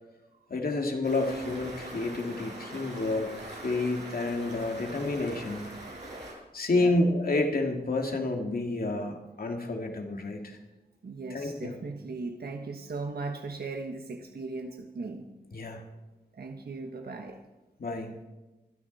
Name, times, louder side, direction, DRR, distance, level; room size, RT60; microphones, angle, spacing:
voice 1, 0.5-5.7 6.5-10.6 11.3-11.7 15.5-15.8 17.8-18.2, left 2 dB, 60° left, 2 dB, 2.4 m, -29 dB
Stream, 1.0-6.3, right 1 dB, 85° right, 6.6 m, -42 dB
voice 2, 11.0-15.3 16.3-17.4, right 3 dB, 65° right, 3 dB, 1.3 m, -38 dB
26.5 x 10.0 x 4.2 m, 1.1 s
wide cardioid pair, 75°, 17 cm